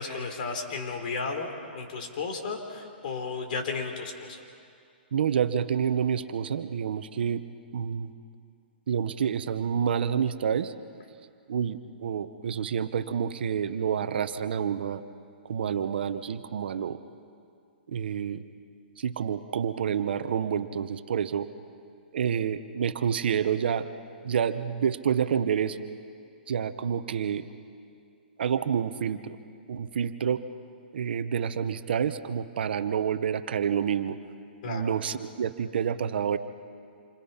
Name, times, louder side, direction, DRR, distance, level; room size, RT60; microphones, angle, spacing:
voice 1, 0.0-4.5 34.6-34.9, left 4 dB, 50° left, 4 dB, 3.6 m, -34 dB
voice 2, 5.1-7.4 7.7-8.1 8.9-10.7 11.5-15.0 15.5-17.0 17.9-18.4 19.0-21.5 22.1-23.8 24.2-25.8 26.5-27.5 28.4-29.4 29.7-30.4 30.9-34.2 34.6-36.4, right 8 dB, 70° right, 11 dB, 1.0 m, -28 dB
28.0 x 25.5 x 5.7 m, 2.3 s
hypercardioid pair, 155°, 6 cm